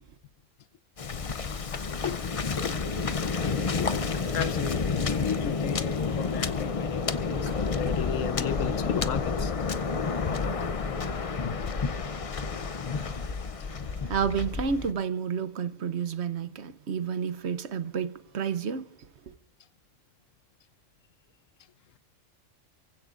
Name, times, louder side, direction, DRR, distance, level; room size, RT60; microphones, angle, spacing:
Waves surf, 1.0-14.9, left 4 dB, 35° left, 0.5 m, -30 dB
sound 1, 3.3-10.6, equal, 60° left, 7.2 m, -59 dB
voice 1, 4.3-9.5 11.6-11.8, left 9 dB, 85° left, 1.2 m, -35 dB
voice 2, 14.0-18.8 19.3-19.4, right 7 dB, 60° right, 1.0 m, -30 dB
29.0 x 16.0 x 2.5 m
omnidirectional pair, 1.3 m